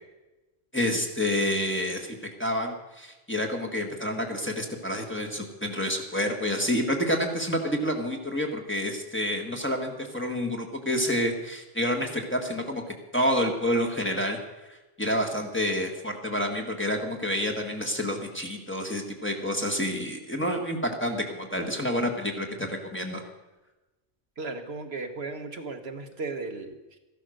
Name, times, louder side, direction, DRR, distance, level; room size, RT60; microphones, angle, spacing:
voice 1, 0.7-14.4 14.7-23.2, equal, 10° left, 1 dB, 1.7 m, -28 dB
voice 2, 24.4-27.0, right 3 dB, 60° right, 6 dB, 1.3 m, -36 dB
14.5 x 11.5 x 6.4 m, 1.1 s
omnidirectional pair, 1.2 m